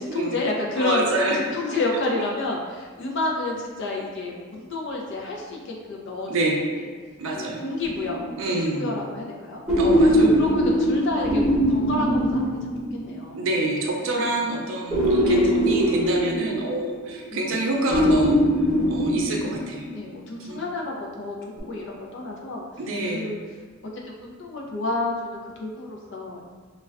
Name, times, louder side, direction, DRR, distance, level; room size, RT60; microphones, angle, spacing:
voice 1, 0.0-1.2 1.5-6.3 6.8-6.9 7.4-9.6 10.2-13.5 14.2-14.4 15.2-15.8 17.3-17.6 19.9-21.4 21.6-22.7 23.1-23.4 23.9-26.4, left 2 dB, 55° left, -1 dB, 0.5 m, -30 dB
voice 2, 0.8-1.4 6.3-6.6 7.2-7.6 8.4-8.9 9.7-10.4 13.3-18.4 18.9-19.8 20.4-20.6 22.8-23.3, right 2 dB, 65° right, 0 dB, 0.5 m, -27 dB
sound 1, 7.8-8.5 9.7-13.2 14.9-17.2 17.9-19.9 21.6-21.7, equal, 5° right, 1.0 m, -21 dB
2.3 x 2.2 x 3.4 m, 1.5 s
head